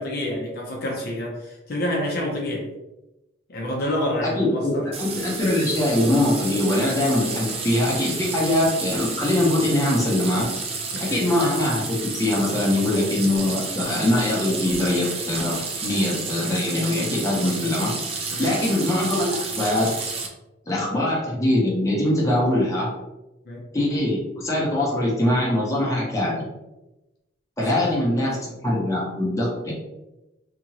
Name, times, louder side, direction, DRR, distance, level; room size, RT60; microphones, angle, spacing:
voice 1, 0.0-2.7 3.5-4.9 10.9-11.2 18.3-18.5 23.5-23.7 27.7-28.6, left 1 dB, 55° left, -2 dB, 0.6 m, -28 dB
voice 2, 4.4-10.5 11.0-15.6 15.8-19.9 20.7-22.9 23.7-26.3 27.6-28.4 28.6-29.5, left 1 dB, 15° left, -5 dB, 0.9 m, -22 dB
sound 1, 4.9-20.3, right 4 dB, 30° right, 0.4 m, -31 dB
2.9 x 2.5 x 2.8 m, 0.97 s
head